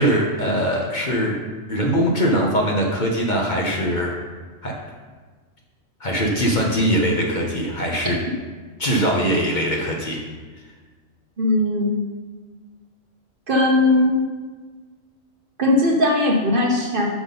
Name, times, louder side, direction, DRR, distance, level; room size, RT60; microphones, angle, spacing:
voice 1, 0.0-1.4 1.7-4.1 4.6-4.7 6.0-8.2 8.8-10.2, equal, 40° left, -1 dB, 1.1 m, -21 dB
voice 2, 11.4-11.9 13.5-14.2 15.6-17.1, left 2 dB, 45° right, -1 dB, 1.1 m, -18 dB
6.0 x 6.0 x 5.3 m, 1.4 s
omnidirectional pair, 1.3 m